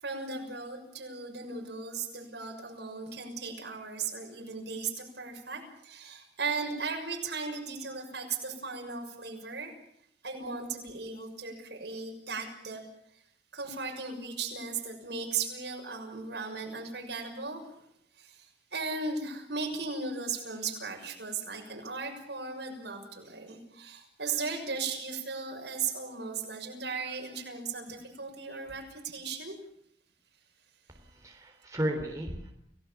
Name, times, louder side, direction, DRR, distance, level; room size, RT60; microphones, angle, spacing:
voice 1, 0.0-9.7 10.2-12.8 13.5-17.9 18.2-18.5 18.7-29.5, right 4 dB, 70° right, 2 dB, 6.5 m, -37 dB
voice 2, 30.9-32.5, equal, 20° right, 2 dB, 3.6 m, -34 dB
29.5 x 18.0 x 7.3 m, 0.72 s
head